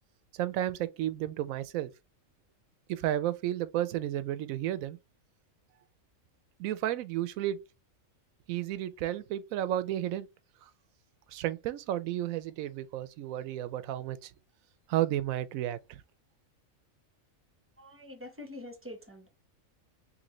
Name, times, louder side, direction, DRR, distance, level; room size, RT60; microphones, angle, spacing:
voice 1, 0.3-1.9 2.9-5.0 6.6-7.6 8.5-10.3 10.6-10.7 11.3-14.3 14.9-16.0, right 12 dB, 80° right, 1.0 m, -32 dB
voice 2, 17.8-19.3, left 1 dB, 10° right, 0.7 m, -45 dB
3.9 x 3.1 x 3.1 m
omnidirectional pair, 1.4 m